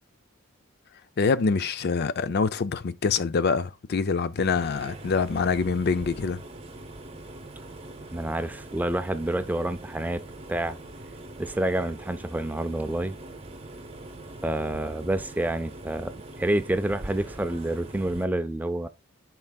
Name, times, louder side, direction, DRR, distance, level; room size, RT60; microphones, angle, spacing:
voice 1, 1.2-6.4, left 5 dB, 50° left, 0.4 m, -25 dB
sound 1, 4.4-18.3, right 2 dB, 30° right, 0.9 m, -42 dB
voice 2, 8.1-10.2 10.5-10.8 11.4-13.2 14.4-18.9, right 1 dB, 10° right, 0.4 m, -28 dB
11.0 x 4.6 x 2.3 m
head